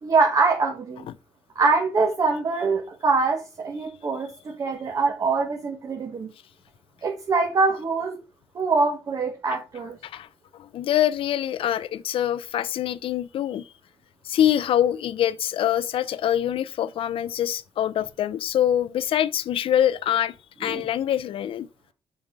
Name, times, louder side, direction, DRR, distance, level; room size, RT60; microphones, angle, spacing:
voice 1, 0.0-1.1 1.5-6.3 7.0-8.2 8.5-10.0 20.7-20.8, right 4 dB, 40° right, 1.5 m, -24 dB
voice 2, 10.5-13.6 14.2-20.3 20.6-21.7, left 11 dB, 70° left, 0.6 m, -24 dB
7.3 x 4.8 x 5.2 m
cardioid pair, 140°, 10 cm